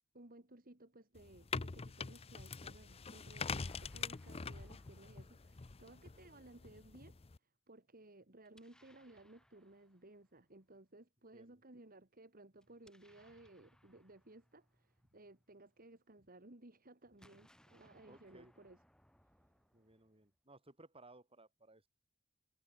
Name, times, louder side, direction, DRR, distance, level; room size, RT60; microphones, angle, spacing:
voice 1, 0.1-18.8 19.4-19.5, right 2 dB, 45° right, 2.6 m, -59 dB
sound 1, 1.2-7.4, left 5 dB, 30° left, 0.6 m, -45 dB
Explosion, 3.3-6.3 8.4-10.6 12.5-16.0 17.0-20.4, equal, 5° left, 4.1 m, -70 dB
voice 2, 18.1-18.5 19.7-21.9, right 2 dB, 30° right, 7.1 m, -61 dB
head